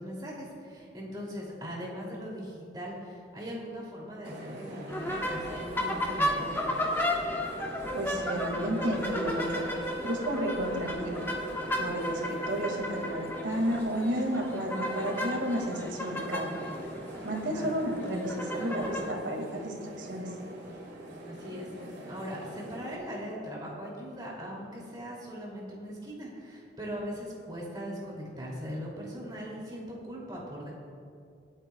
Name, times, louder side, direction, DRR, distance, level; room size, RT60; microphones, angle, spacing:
voice 1, 0.0-6.7 17.5-17.8 21.3-30.7, equal, 25° right, -4 dB, 2.7 m, -40 dB
sound 1, 4.2-23.0, right 1 dB, 70° right, 2.4 m, -43 dB
sound 2, 4.9-19.1, left 1 dB, 10° left, 1.1 m, -34 dB
voice 2, 7.9-9.6 10.0-11.3 11.8-16.6 17.2-20.3, right 1 dB, 85° right, 1 dB, 2.1 m, -32 dB
26.5 x 8.8 x 2.3 m, 2.3 s
head